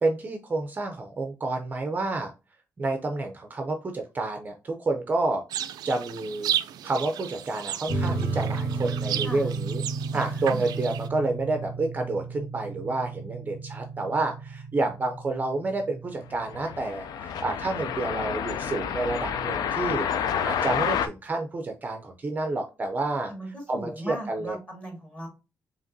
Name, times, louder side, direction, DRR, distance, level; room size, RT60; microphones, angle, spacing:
voice 1, 0.0-2.3 2.8-5.4 5.8-6.5 6.8-9.8 10.1-23.3 23.7-24.6, right 2 dB, 25° right, 4 dB, 0.5 m, -29 dB
sound 1, 5.5-11.1, right 11 dB, 85° right, 0.3 m, -34 dB
sound 2, 7.9-16.9, right 3 dB, 60° left, 1.4 m, -33 dB
voice 2, 10.1-10.6 23.3-25.3, equal, 20° left, 0 dB, 1.8 m, -38 dB
sound 3, 16.3-21.1, left 8 dB, 75° left, 0.4 m, -29 dB
5.1 x 2.9 x 2.6 m, 0.30 s
cardioid pair, 145°, 7 cm